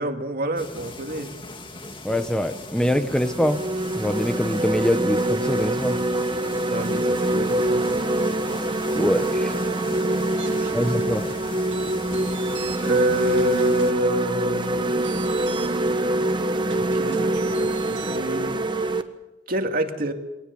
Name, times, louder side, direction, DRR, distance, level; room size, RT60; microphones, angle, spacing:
voice 1, 0.0-1.3 6.7-8.0 10.3-10.9 12.8-14.8 16.7-18.6 19.5-20.1, right 2 dB, 55° right, 5 dB, 2.2 m, -27 dB
sound 1, 0.6-13.9, left 2 dB, 30° left, 1.9 m, -40 dB
voice 2, 2.0-3.6 3.9-6.0 8.9-9.5 10.7-11.2, equal, 5° left, 8 dB, 0.9 m, -24 dB
sound 2, 2.1-2.3 2.8-19.0, right 1 dB, 25° right, 1.3 m, -25 dB
sound 3, 10.4-18.2, right 5 dB, 85° right, 1.7 m, -41 dB
23.5 x 18.5 x 7.0 m, 0.97 s
head